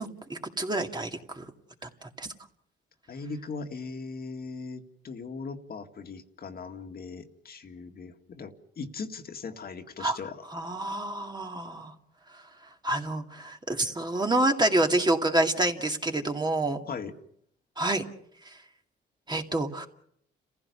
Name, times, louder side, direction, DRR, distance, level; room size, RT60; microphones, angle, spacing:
voice 1, 0.0-1.5 1.8-2.3 10.0-10.2 10.5-11.9 12.3-12.4 12.8-16.8 17.8-18.0 18.5-18.6 19.3-19.9, right 2 dB, 20° right, 3 dB, 2.3 m, -28 dB
voice 2, 3.1-10.4 16.9-17.2, left 4 dB, 50° left, 5 dB, 2.0 m, -39 dB
30.0 x 15.5 x 6.9 m, 0.70 s
cardioid pair, 90°, 20 cm